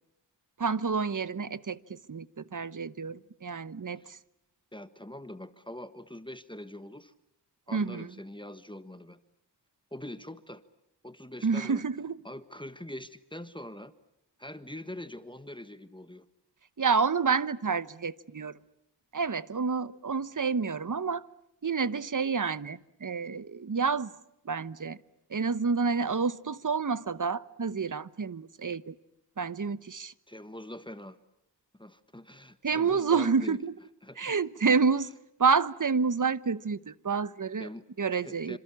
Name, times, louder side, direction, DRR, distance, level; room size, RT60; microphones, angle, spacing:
voice 1, 0.6-4.2 7.7-8.1 11.4-12.2 16.8-18.5 19.1-21.2 21.6-24.1 24.4-25.0 25.3-28.9 29.4-30.1 32.6-33.7 34.2-35.1 35.4-37.7 38.0-38.6, right 5 dB, 45° right, 1.1 m, -29 dB
voice 2, 4.7-7.1 7.7-9.2 9.9-10.6 11.0-11.8 12.2-13.9 14.4-16.3 30.3-31.2 31.8-33.6 34.0-34.3 37.6-37.8 38.1-38.6, left 1 dB, 10° left, 1.5 m, -43 dB
28.0 x 26.5 x 7.1 m
cardioid pair, 50°, 42 cm